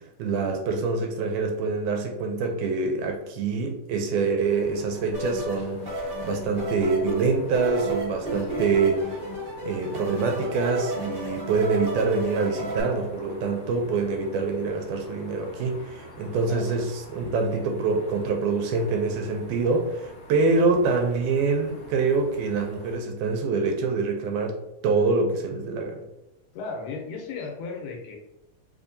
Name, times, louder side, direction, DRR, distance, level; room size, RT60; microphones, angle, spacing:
voice 1, 0.2-9.0 9.7-26.0, right 4 dB, 80° right, 3 dB, 2.0 m, -25 dB
sound 1, 4.4-23.0, left 1 dB, 50° left, 1.1 m, -46 dB
sound 2, 5.1-12.8, right 1 dB, 50° right, 0.8 m, -32 dB
voice 2, 8.2-8.7 16.4-16.8 26.5-28.2, left 4 dB, 80° left, 1 dB, 2.1 m, -36 dB
4.8 x 2.6 x 2.6 m, 0.90 s
omnidirectional pair, 3.7 m